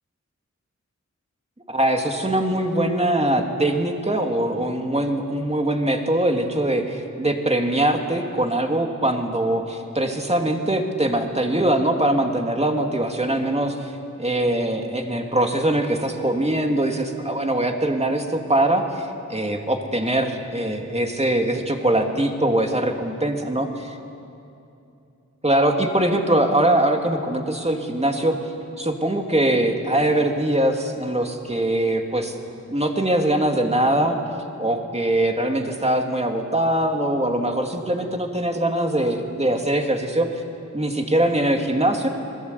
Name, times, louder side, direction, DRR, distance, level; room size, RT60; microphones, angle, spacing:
voice 1, 1.7-13.9 14.2-24.0 25.4-28.4 28.8-32.3 32.7-34.2 34.6-40.3 40.7-42.1, right 1 dB, 20° right, 3 dB, 2.5 m, -22 dB
27.0 x 22.0 x 8.3 m, 2.7 s
wide cardioid pair, 80°, 29 cm